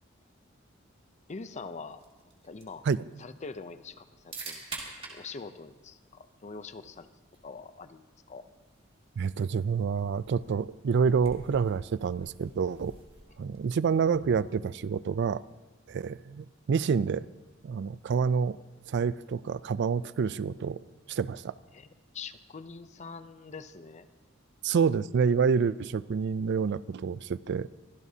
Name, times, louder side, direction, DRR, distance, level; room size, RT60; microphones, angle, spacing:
voice 1, 1.3-2.0 2.4-2.9 3.2-7.1 7.4-8.4 21.7-21.9 22.1-24.1 24.7-24.9, left 4 dB, 35° left, 0.6 m, -44 dB
sound 1, 1.9-13.8, right 3 dB, 30° right, 2.5 m, -49 dB
voice 2, 9.2-12.9 13.4-15.4 15.9-17.3 17.6-18.6 18.9-20.8 21.1-21.5 24.6-27.7, right 6 dB, 60° right, 0.4 m, -28 dB
23.5 x 16.0 x 2.8 m
head